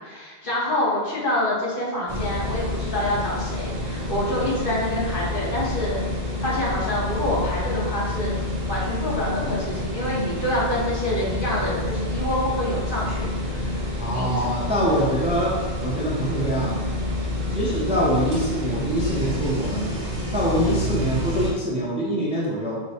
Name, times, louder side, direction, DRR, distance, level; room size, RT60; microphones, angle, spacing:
voice 1, 0.0-6.0 6.4-8.4 8.7-13.8 14.1-14.4 20.6-20.9, left 1 dB, 55° left, -7 dB, 1.3 m, -27 dB
sound 1, 2.1-21.5, left 1 dB, 45° right, 0.9 m, -28 dB
voice 2, 14.0-15.5 15.8-16.9 17.5-19.9 20.3-22.8, equal, 5° right, -6 dB, 0.6 m, -24 dB
4.6 x 2.2 x 4.2 m, 1.5 s
omnidirectional pair, 1.1 m